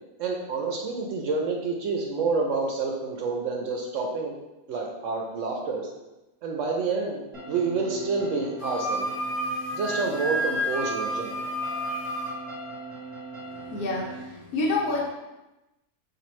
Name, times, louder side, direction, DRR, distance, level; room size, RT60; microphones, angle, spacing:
voice 1, 0.2-4.4 4.7-5.9 6.4-9.1 9.7-11.3, right 4 dB, 70° right, 0 dB, 0.8 m, -28 dB
sound 1, 7.3-14.2, right 3 dB, 30° right, 0.8 m, -40 dB
Wind instrument woodwind instrument, 8.6-12.3, equal, 45° left, 0.8 m, -30 dB
voice 2, 13.5-15.1, left 2 dB, 85° left, -2 dB, 1.2 m, -28 dB
4.2 x 2.7 x 3.0 m, 1.0 s
omnidirectional pair, 1.5 m